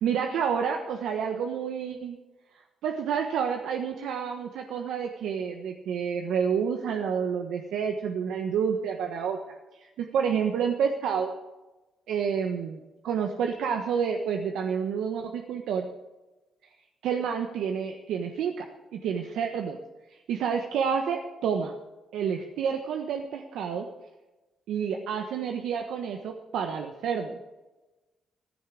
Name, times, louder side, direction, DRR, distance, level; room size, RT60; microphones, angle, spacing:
voice 1, 0.0-2.2 2.8-9.4 9.7-9.9 10.1-11.3 12.1-15.9 17.0-18.7 18.9-19.8 20.1-21.7 22.1-23.9 24.7-27.4, right 7 dB, 85° right, 4 dB, 1.3 m, -29 dB
15.0 x 14.5 x 6.3 m, 1.1 s
cardioid pair, 100°, 0 cm